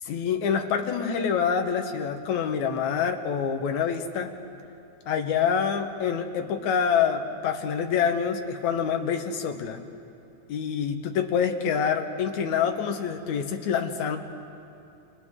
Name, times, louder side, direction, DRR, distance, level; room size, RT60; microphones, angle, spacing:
voice 1, 0.1-4.3 5.1-9.8 10.5-14.2, left 7 dB, 70° left, 4 dB, 2.5 m, -26 dB
29.0 x 28.5 x 3.7 m, 2.6 s
omnidirectional pair, 3.5 m